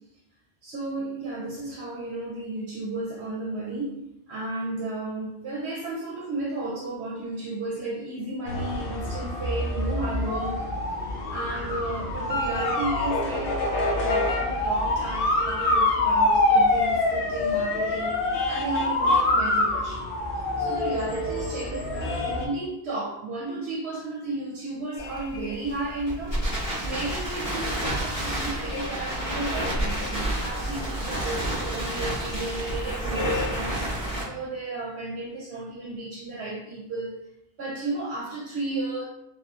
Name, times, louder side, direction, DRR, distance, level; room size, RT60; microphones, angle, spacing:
voice 1, 0.6-4.0 4.3-10.7 11.3-20.0 20.6-26.5 26.8-37.3 37.6-39.0, right 2 dB, 85° right, -4 dB, 0.9 m, -33 dB
sound 1, 8.5-22.5, left 2 dB, 65° left, 0.7 m, -25 dB
Crackle, 25.0-34.2, right 1 dB, 50° left, 1.5 m, -30 dB
sound 2, 25.0-26.3 28.7-30.8 33.1-33.8, left 6 dB, 35° left, 0.3 m, -38 dB
3.4 x 2.7 x 2.3 m, 0.81 s
omnidirectional pair, 1.1 m